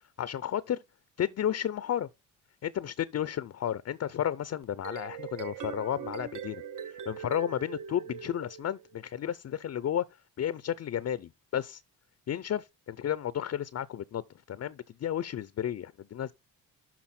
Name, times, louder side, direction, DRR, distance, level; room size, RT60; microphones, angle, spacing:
voice 1, 0.2-0.8 1.2-2.1 2.6-10.0 10.4-11.8 12.3-14.2 14.5-16.3, left 10 dB, 40° left, 0.5 m, -32 dB
sound 1, 4.6-9.0, right 9 dB, 50° right, 0.8 m, -42 dB
12.0 x 4.0 x 4.3 m
cardioid pair, 70°, 40 cm